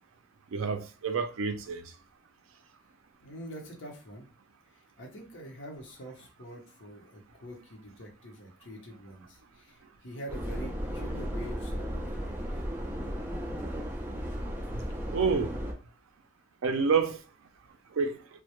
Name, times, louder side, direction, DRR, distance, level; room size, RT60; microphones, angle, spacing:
voice 1, 0.5-1.8 15.1-15.5 16.6-17.2 18.0-18.2, right 5 dB, 80° right, 0.4 m, -28 dB
voice 2, 3.2-4.3 4.7-12.4, equal, 65° left, 0.7 m, -45 dB
Subway metro underground, 10.3-15.7, equal, 10° right, 0.3 m, -35 dB
2.1 x 2.0 x 2.9 m
head